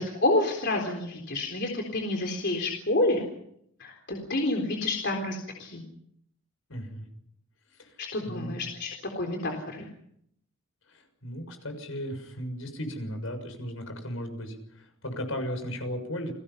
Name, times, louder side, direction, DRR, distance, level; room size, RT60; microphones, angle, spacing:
voice 1, 0.0-3.2 3.8-5.8 8.0-9.8, left 2 dB, 55° left, 2 dB, 3.9 m, -29 dB
voice 2, 6.7-7.0 7.8-7.9 8.2-8.7 10.9-16.3, equal, 75° left, 8 dB, 6.7 m, -36 dB
30.0 x 22.0 x 5.8 m, 0.71 s
head